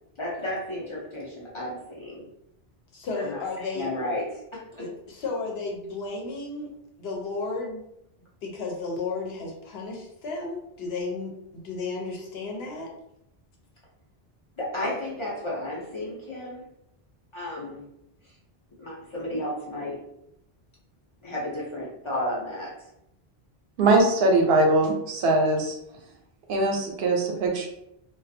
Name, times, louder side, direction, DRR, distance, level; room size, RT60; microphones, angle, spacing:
voice 1, 0.2-2.3 3.1-4.8 14.6-16.6 17.3-17.8 18.2-18.3 18.8-20.0 21.2-22.9, left 1 dB, 40° left, -5 dB, 0.5 m, -33 dB
voice 2, 2.9-3.9 4.8-6.7 7.0-7.8 8.4-12.9, left 3 dB, 75° left, 0 dB, 0.9 m, -33 dB
voice 3, 23.8-25.7 26.5-27.7, right 2 dB, 75° right, 1 dB, 0.8 m, -21 dB
2.4 x 2.2 x 2.6 m, 0.80 s
omnidirectional pair, 1.0 m